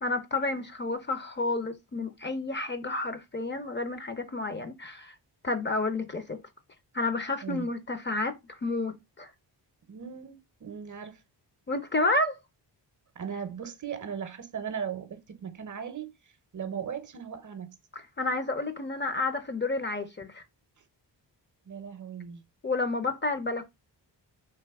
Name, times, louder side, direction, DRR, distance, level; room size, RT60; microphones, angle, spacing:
voice 1, 0.0-5.1 5.4-6.4 6.9-9.3 11.7-12.4 17.9-20.4 22.6-23.7, left 2 dB, 25° left, 0.5 m, -30 dB
voice 2, 9.9-11.2 13.2-16.1 16.5-17.8 21.7-22.4, right 7 dB, 45° right, 0.7 m, -37 dB
3.4 x 2.6 x 3.4 m
cardioid pair, 70°, 44 cm